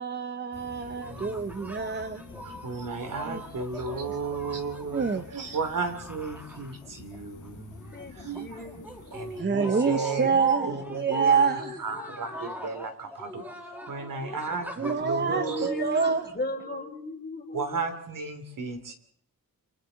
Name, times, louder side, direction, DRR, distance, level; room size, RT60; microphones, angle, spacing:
voice 1, 0.0-2.6 3.2-3.4 4.9-5.2 9.4-11.7 14.8-16.4, right 5 dB, 30° right, 0.8 m, -27 dB
sound 1, 0.5-9.4, left 5 dB, 60° left, 1.8 m, -48 dB
sound 2, 1.0-7.2 7.4-16.4, equal, 5° right, 2.1 m, -42 dB
voice 2, 1.1-1.5 2.4-7.8 8.2-8.6 9.1-10.3 10.7-15.8 17.5-18.9, right 4 dB, 65° right, 2.9 m, -34 dB
voice 3, 7.9-9.1 10.1-10.7 11.8-12.2 14.5-14.6 15.2-17.8, left 2 dB, 30° left, 3.4 m, -37 dB
29.5 x 24.5 x 4.0 m
wide cardioid pair, 140°, 35 cm